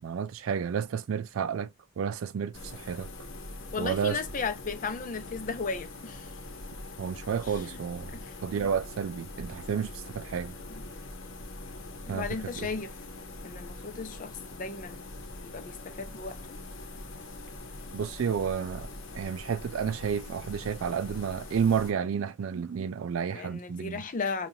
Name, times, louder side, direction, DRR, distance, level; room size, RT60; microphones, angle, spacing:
voice 1, 0.0-3.1 3.8-4.2 7.0-8.2 8.4-10.5 12.1-12.7 17.9-18.9 19.1-24.0, right 7 dB, 85° right, 0.4 m, -31 dB
sound 1, 2.5-21.9, left 2 dB, 70° left, 1.0 m, -43 dB
voice 2, 3.7-6.3 8.1-8.3 10.7-10.8 12.1-12.9 13.4-15.0 15.4-16.6 23.3-24.5, left 4 dB, 40° left, 0.6 m, -35 dB
5.3 x 2.5 x 2.7 m
head